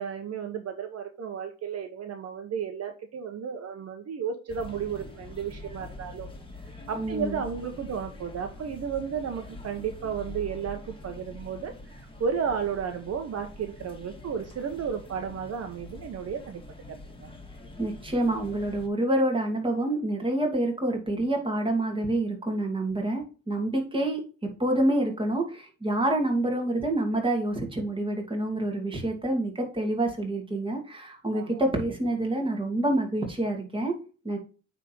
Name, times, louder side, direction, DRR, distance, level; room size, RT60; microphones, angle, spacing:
voice 1, 0.0-6.3 6.9-16.6 17.2-17.3 31.3-31.6, right 7 dB, 55° right, 6 dB, 1.1 m, -33 dB
sound 1, 4.5-18.9, left 2 dB, 15° left, 2.0 m, -45 dB
voice 2, 6.9-7.4 17.8-34.0 34.2-34.4, right 1 dB, 15° right, 2 dB, 2.7 m, -27 dB
9.0 x 3.7 x 4.6 m, 0.36 s
cardioid pair, 90°, 30 cm